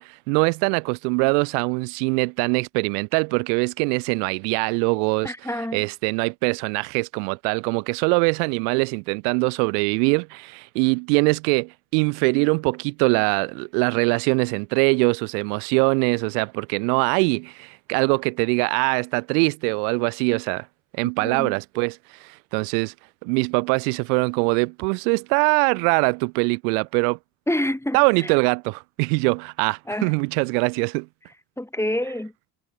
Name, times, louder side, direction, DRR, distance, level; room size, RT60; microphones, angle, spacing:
voice 1, 0.0-5.3 5.7-20.7 20.9-22.9 23.2-27.2 27.9-31.1, right 38 dB, 75° right, 1.3 m, -23 dB
voice 2, 5.2-5.8 21.2-21.5 27.5-28.3 29.9-30.1 31.6-32.3, left 1 dB, 5° left, 5.3 m, -27 dB
hypercardioid pair, 55°, 47 cm